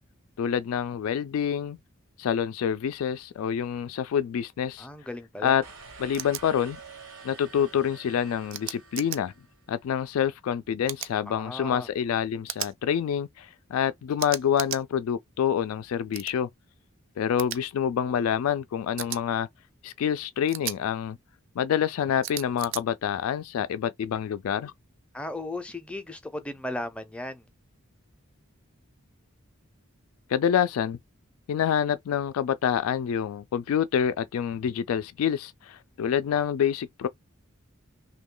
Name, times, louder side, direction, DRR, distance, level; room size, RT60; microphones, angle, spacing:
voice 1, 0.4-1.8 2.2-4.9 5.4-5.6 6.0-6.8 7.2-9.3 9.7-16.5 17.2-19.5 19.8-21.2 21.6-24.7 30.3-31.0 31.5-37.1, left 8 dB, 90° left, 0.3 m, -27 dB
voice 2, 4.8-5.5 11.3-11.9 25.1-27.5, left 1 dB, 5° left, 0.4 m, -36 dB
sound 1, 5.6-9.8, right 4 dB, 90° right, 1.1 m, -48 dB
sound 2, 6.1-6.4 8.5-9.2 10.9-11.1 12.5-12.7 14.2-14.8 16.1-16.3 17.4-17.6 19.0-19.2 20.5-20.8 22.2-22.8, right 12 dB, 65° right, 0.4 m, -35 dB
3.0 x 2.2 x 3.7 m
head